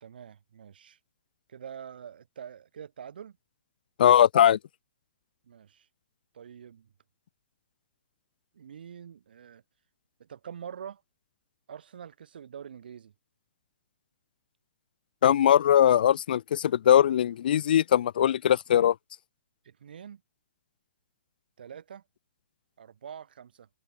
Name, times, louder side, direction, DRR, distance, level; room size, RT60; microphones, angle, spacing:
voice 1, 0.0-1.0 1.5-3.4 5.4-5.9 6.3-6.9 8.5-9.6 10.2-11.0 11.7-13.1 19.6-20.2 21.6-22.0 22.8-23.7, right 8 dB, 65° right, 2.7 m, -45 dB
voice 2, 4.0-4.6 15.2-18.9, left 10 dB, 60° left, 0.6 m, -20 dB
open air
hypercardioid pair, 125°, 5 cm